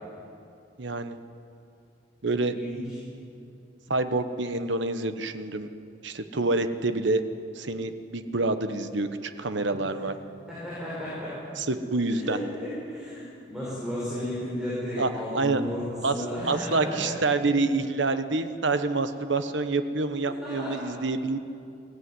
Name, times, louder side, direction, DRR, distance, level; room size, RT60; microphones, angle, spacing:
voice 1, 0.8-1.2 2.2-2.5 3.9-5.7 6.0-7.2 7.5-10.1 11.6-12.4 15.0-15.6 16.0-21.4, right 3 dB, 70° right, 9 dB, 1.1 m, -27 dB
voice 2, 2.5-2.8 10.5-11.3 12.1-17.1 20.4-20.8, equal, 5° right, -8 dB, 5.7 m, -33 dB
22.0 x 15.5 x 9.7 m, 2.6 s
head